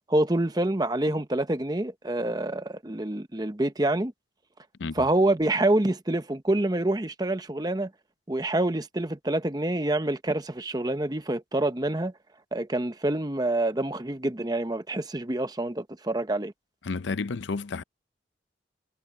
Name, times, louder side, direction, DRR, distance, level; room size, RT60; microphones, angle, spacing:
voice 1, 0.1-4.1 4.9-7.9 8.3-12.1 12.5-16.5, right 1 dB, 20° right, 0.9 m, -27 dB
voice 2, 16.9-17.8, left 4 dB, 85° left, 0.6 m, -31 dB
head